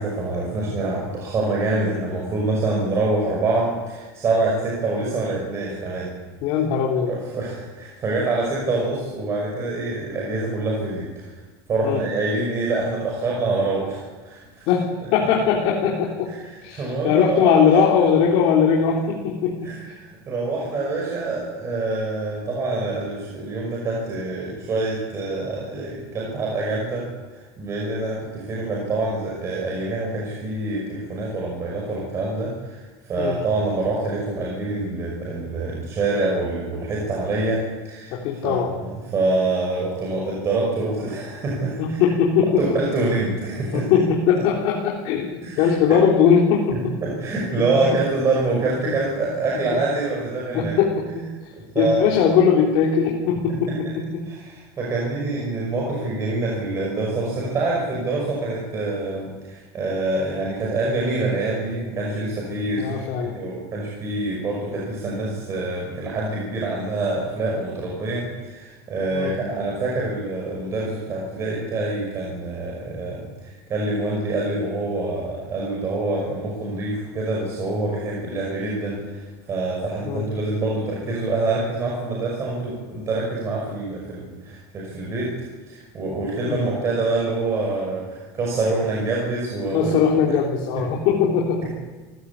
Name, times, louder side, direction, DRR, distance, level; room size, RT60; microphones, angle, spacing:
voice 1, 0.0-6.1 7.1-11.3 11.7-14.7 16.3-18.0 19.6-38.1 38.4-42.0 42.6-43.9 45.4-45.7 46.7-50.7 51.5-52.1 53.5-53.9 54.3-85.3 85.7-89.9 91.8-91.9, right 2 dB, 25° right, -2 dB, 5.7 m, -26 dB
voice 2, 6.4-7.1 11.8-12.0 14.7-16.3 16.6-19.7 33.2-33.4 38.1-38.7 41.8-42.6 43.7-46.9 50.5-51.3 51.8-54.3 62.7-63.3 69.1-69.3 80.1-80.2 86.4-86.6 89.7-91.8, left 7 dB, 50° left, -1 dB, 3.5 m, -20 dB
28.5 x 16.0 x 8.5 m, 1.3 s
cardioid pair, 170°, 12 cm